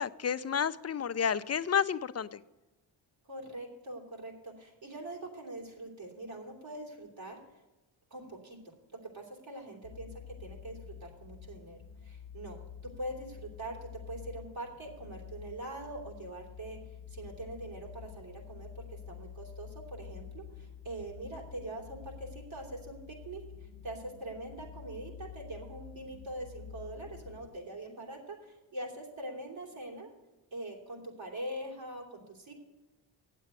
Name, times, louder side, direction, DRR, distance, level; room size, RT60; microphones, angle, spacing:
voice 1, 0.0-2.4, left 7 dB, 35° left, 14 dB, 0.5 m, -30 dB
voice 2, 3.2-7.4 8.1-8.7 9.1-16.8 17.1-30.1 30.5-32.5, right 1 dB, 70° right, 0 dB, 3.4 m, -43 dB
sound 1, 9.8-27.6, left 8 dB, 75° left, 0.7 m, -49 dB
9.2 x 7.6 x 8.9 m, 1.1 s
cardioid pair, 60°, 48 cm